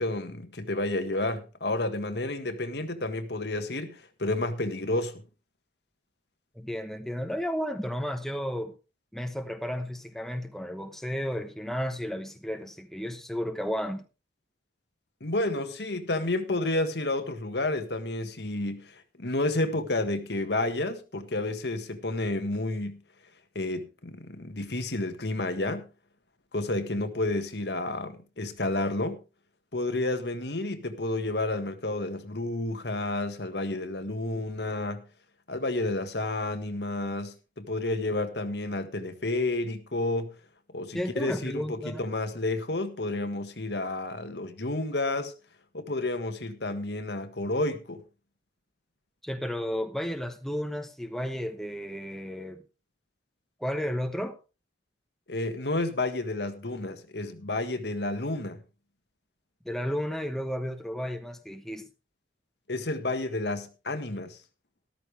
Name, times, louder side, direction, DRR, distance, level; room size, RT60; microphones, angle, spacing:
voice 1, 0.0-5.2 15.2-23.0 23.5-25.9 26.5-29.2 29.7-35.0 35.5-40.3 40.7-45.3 45.7-48.0 55.3-58.6 62.7-64.4, left 2 dB, 70° left, 1.7 m, -30 dB
voice 2, 6.5-8.7 9.1-14.0 40.9-42.0 49.2-52.6 53.6-54.4 59.6-61.9, equal, ahead, 1.1 m, -33 dB
13.5 x 13.5 x 3.4 m
head